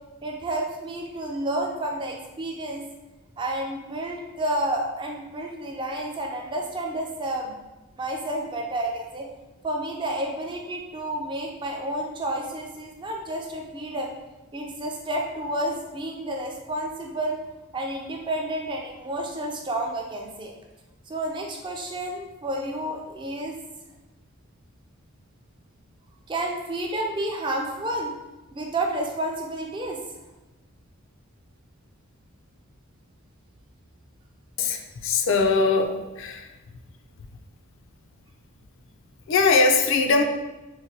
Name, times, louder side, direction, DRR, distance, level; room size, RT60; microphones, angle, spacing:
voice 1, 0.2-2.8 3.4-7.6 8.0-9.3 9.6-14.1 14.5-17.4 17.7-20.5 21.1-23.6 26.3-28.1 28.5-30.0, right 1 dB, 20° right, 1 dB, 0.3 m, -30 dB
voice 2, 34.6-36.5 39.3-40.2, left 4 dB, 60° left, 5 dB, 0.3 m, -21 dB
4.5 x 2.1 x 2.7 m, 1.1 s
head